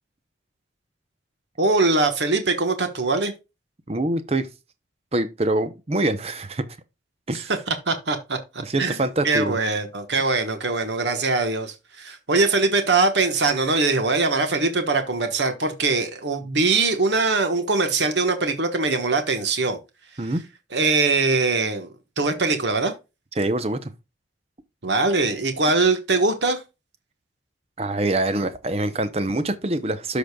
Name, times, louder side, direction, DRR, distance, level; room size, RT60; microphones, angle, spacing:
voice 1, 1.6-3.3 7.7-9.0 9.2-19.8 20.7-21.9 22.2-22.9 24.8-26.6, right 3 dB, 70° right, 1.2 m, -22 dB
voice 2, 3.9-4.5 5.1-6.6 7.3-7.5 8.6-9.6 20.2-20.4 23.4-23.9 27.8-30.2, right 2 dB, 35° right, 0.7 m, -24 dB
13.0 x 5.1 x 2.3 m
head